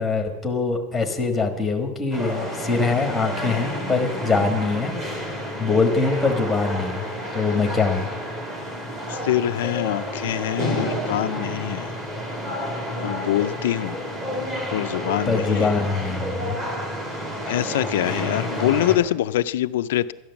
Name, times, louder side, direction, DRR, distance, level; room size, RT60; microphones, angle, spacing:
voice 1, 0.0-5.0 5.6-7.1 7.3-8.1 15.2-16.5, left 4 dB, ahead, 3 dB, 1.4 m, -23 dB
sound 1, 2.1-19.0, equal, 20° right, 2.4 m, -30 dB
voice 2, 9.1-11.9 12.9-14.0 14.7-15.7 17.5-20.1, left 13 dB, 70° left, 13 dB, 0.4 m, -24 dB
12.5 x 10.5 x 7.1 m, 1.0 s
supercardioid pair, 175°, 0 cm